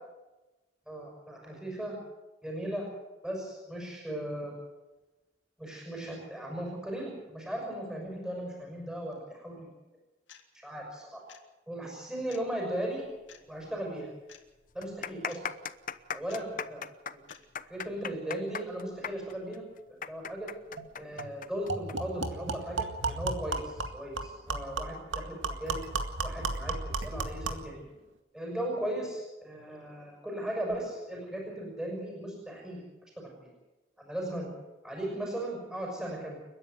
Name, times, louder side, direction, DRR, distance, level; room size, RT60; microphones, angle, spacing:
voice 1, 0.9-2.0 2.4-2.9 3.2-4.6 5.6-9.7 10.6-11.2 11.7-13.0 13.5-14.1 14.7-15.4 16.1-16.8 17.6-19.6 20.1-20.5 21.0-25.8 26.2-27.9 28.3-32.8 33.2-33.5 34.0-34.5 34.8-36.4, right 1 dB, 5° right, -1 dB, 6.2 m, -37 dB
sound 1, 10.3-10.4 11.3-11.5 12.3-12.4 13.3-13.4 14.3-14.4 15.3-15.4 16.3-16.4 17.3-17.4, left 9 dB, 90° left, 2.6 m, -52 dB
sound 2, 13.6-13.7 14.0-14.1 14.7-22.0 22.2-22.3 23.1-23.4, left 7 dB, 45° left, 0.9 m, -38 dB
sound 3, 20.8-20.9 21.2-21.3 21.7-27.7, right 3 dB, 90° right, 2.2 m, -34 dB
30.0 x 10.5 x 9.4 m, 1.1 s
head